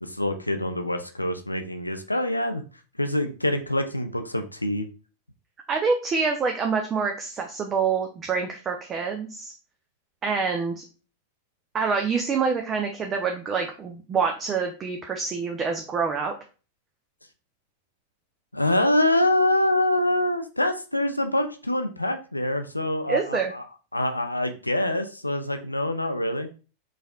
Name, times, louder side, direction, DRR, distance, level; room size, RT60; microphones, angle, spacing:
voice 1, 0.0-2.6 3.0-4.9 18.5-23.7 23.9-26.5, left 1 dB, 85° left, 7 dB, 0.5 m, -25 dB
voice 2, 5.7-9.5 10.2-10.8 11.7-16.3 23.1-23.5, right 5 dB, 25° right, 3 dB, 0.7 m, -26 dB
4.8 x 4.1 x 2.4 m, 0.34 s
figure-of-eight pair, 90°, 0 cm